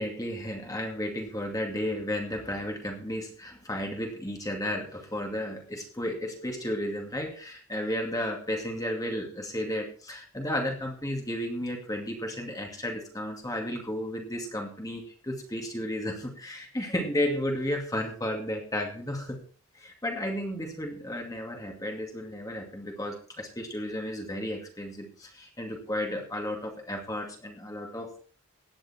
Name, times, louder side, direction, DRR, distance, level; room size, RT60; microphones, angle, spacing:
voice 1, 0.0-19.4 19.7-28.1, left 1 dB, 15° left, 2 dB, 2.4 m, -33 dB
16.5 x 10.0 x 4.4 m, 0.42 s
head